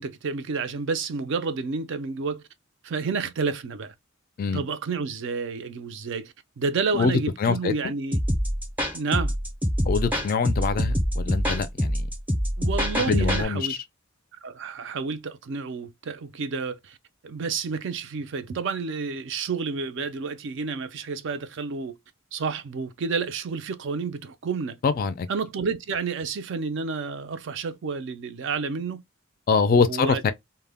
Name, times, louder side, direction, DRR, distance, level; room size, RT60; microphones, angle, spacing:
voice 1, 0.0-2.4 2.8-3.9 4.5-8.2 8.9-9.3 12.6-13.8 14.4-17.0 17.2-22.0 22.3-24.8 25.3-29.0 29.8-30.3, right 4 dB, 60° right, 0.4 m, -30 dB
voice 2, 7.4-7.9 9.9-12.1 12.9-13.8 24.8-25.3 29.5-30.3, left 5 dB, 45° left, 0.3 m, -24 dB
sound 1, 8.1-13.4, equal, 10° right, 0.5 m, -25 dB
2.1 x 2.1 x 3.3 m
head